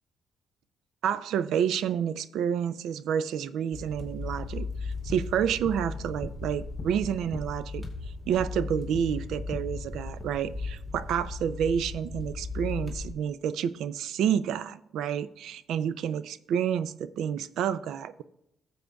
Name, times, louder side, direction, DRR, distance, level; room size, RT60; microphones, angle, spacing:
voice 1, 1.0-7.8 8.3-18.2, right 8 dB, 80° right, 15 dB, 0.4 m, -29 dB
sound 1, 3.7-13.1, left 3 dB, 15° right, 2.4 m, -37 dB
sound 2, 4.9-9.1 9.4-10.3, left 2 dB, 20° left, 0.9 m, -44 dB
13.0 x 7.6 x 2.3 m, 0.81 s
cardioid pair, 90°, 0 cm